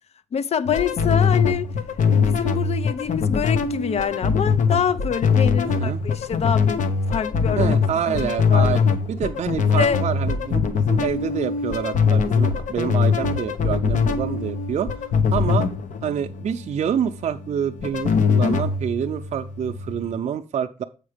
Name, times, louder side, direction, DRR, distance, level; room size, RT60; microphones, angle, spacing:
voice 1, 0.3-1.7 2.1-6.8 7.1-7.8 8.1-8.2 8.5-8.7 9.8-10.0, left 7 dB, 50° left, 0.6 m, -25 dB
sound 1, 0.6-20.2, left 5 dB, 65° left, 0.9 m, -22 dB
voice 2, 5.6-6.0 7.6-8.8 9.1-14.9 15.3-15.7 16.0-20.8, right 8 dB, 60° right, 0.5 m, -27 dB
8.0 x 4.8 x 5.0 m
cardioid pair, 105°, 14 cm